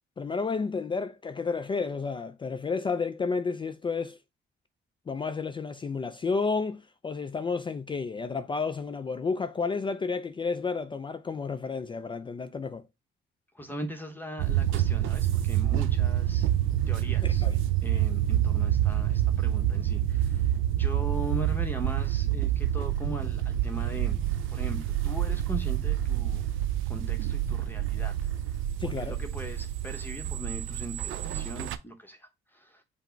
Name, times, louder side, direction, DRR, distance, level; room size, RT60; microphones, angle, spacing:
voice 1, 0.2-4.2 5.1-12.8 17.2-17.5 28.8-29.2, left 4 dB, 25° left, 0.3 m, -31 dB
voice 2, 13.5-16.5 16.9-17.5 17.8-24.2 24.5-26.4 26.9-28.2 28.8-32.8, right 1 dB, 10° left, 0.8 m, -39 dB
sound 1, 14.4-31.8, right 12 dB, 80° right, 0.4 m, -27 dB
5.7 x 2.0 x 4.4 m
cardioid pair, 90°, 20 cm